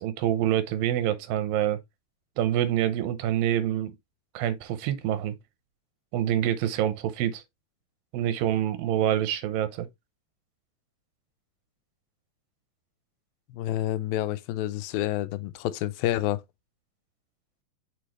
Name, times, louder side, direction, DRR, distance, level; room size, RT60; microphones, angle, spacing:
voice 1, 0.0-1.8 2.4-3.9 4.3-5.4 6.1-7.4 8.1-9.9, right 11 dB, 85° right, 2.6 m, -26 dB
voice 2, 13.5-16.4, left 14 dB, 85° left, 2.4 m, -29 dB
6.1 x 5.1 x 3.0 m
omnidirectional pair, 4.1 m